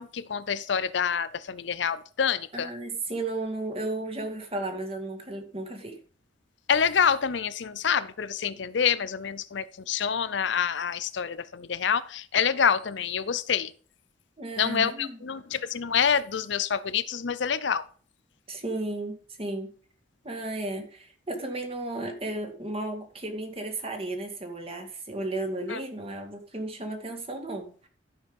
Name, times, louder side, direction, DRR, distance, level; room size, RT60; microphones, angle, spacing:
voice 1, 0.0-2.7 6.7-13.7 14.6-17.8 25.7-25.8, left 7 dB, 70° left, 0.6 m, -27 dB
voice 2, 2.5-6.0 14.4-15.2 18.5-19.7 20.2-27.9, right 2 dB, 30° right, 2.0 m, -34 dB
12.5 x 5.6 x 5.3 m
head